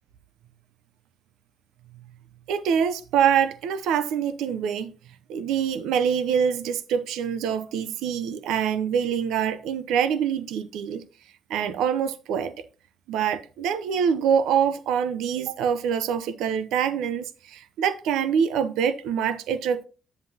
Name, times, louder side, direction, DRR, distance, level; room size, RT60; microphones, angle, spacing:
voice 1, 2.5-4.9 5.3-11.0 11.5-12.5 13.1-19.9, right 8 dB, 90° right, 0.7 m, -25 dB
8.0 x 7.4 x 2.8 m
cardioid pair, 90°, 0 cm